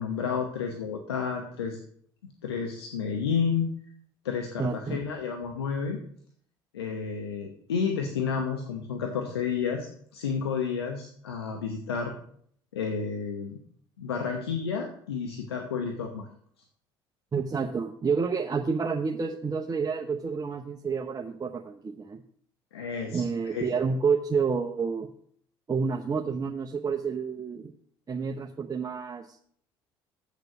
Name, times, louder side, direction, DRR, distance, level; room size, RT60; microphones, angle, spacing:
voice 1, 0.0-1.8 2.2-3.7 4.2-6.0 6.7-9.9 10.1-12.1 12.7-13.6 14.0-16.3 22.7-23.6, left 6 dB, 85° left, 3 dB, 0.9 m, -31 dB
voice 2, 4.6-5.0 17.3-22.2 23.1-25.1 25.7-27.7 28.1-29.4, right 5 dB, 30° right, 1 dB, 0.9 m, -29 dB
8.1 x 6.6 x 6.1 m, 0.62 s
hypercardioid pair, 55°, 13 cm